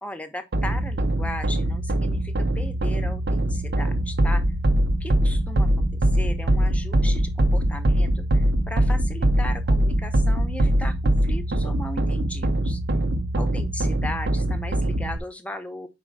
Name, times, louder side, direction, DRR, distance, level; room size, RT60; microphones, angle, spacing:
voice 1, 0.0-4.4 5.0-12.8 13.3-15.9, left 1 dB, 10° left, 0.7 m, -37 dB
sound 1, 0.5-15.2, right 1 dB, 70° right, 0.6 m, -22 dB
4.7 x 4.3 x 4.7 m
head